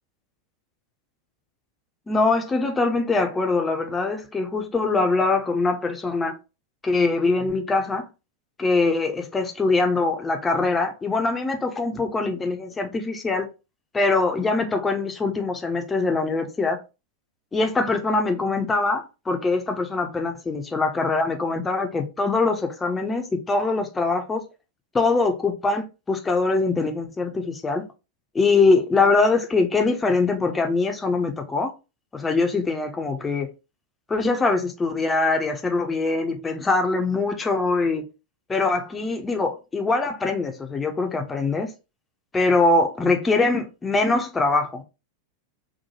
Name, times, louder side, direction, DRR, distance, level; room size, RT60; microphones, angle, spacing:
voice 1, 2.1-6.4 6.8-8.1 8.6-13.5 13.9-16.8 17.5-24.4 24.9-27.8 28.3-31.7 32.1-33.5 34.1-38.0 38.5-41.7 42.3-44.8, left 3 dB, 15° left, 0.5 m, -23 dB
3.0 x 2.2 x 2.7 m
figure-of-eight pair, 90°, 0 cm